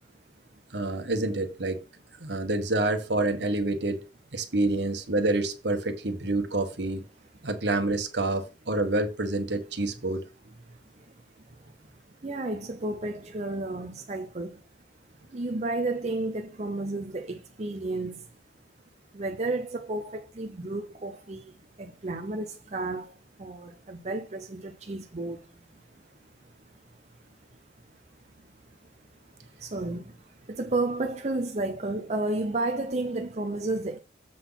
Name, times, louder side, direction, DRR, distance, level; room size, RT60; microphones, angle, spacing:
voice 1, 0.7-1.8 2.2-4.0 4.3-7.0 7.4-10.2, right 2 dB, 70° right, 1.4 m, -27 dB
voice 2, 10.7-11.1 11.5-11.7 12.1-14.6 15.2-18.3 19.1-26.1 26.4-26.8 28.4-28.5 28.8-34.0, right 2 dB, 40° right, 0.7 m, -33 dB
7.6 x 4.0 x 5.7 m
head